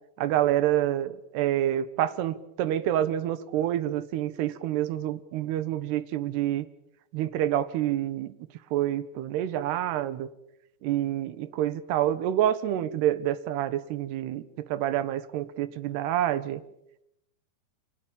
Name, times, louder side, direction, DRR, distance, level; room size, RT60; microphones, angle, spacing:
voice 1, 0.2-6.7 7.1-8.3 8.7-10.3 10.8-16.6, right 12 dB, 75° right, 13 dB, 3.3 m, -27 dB
29.0 x 26.0 x 7.1 m, 0.81 s
omnidirectional pair, 4.8 m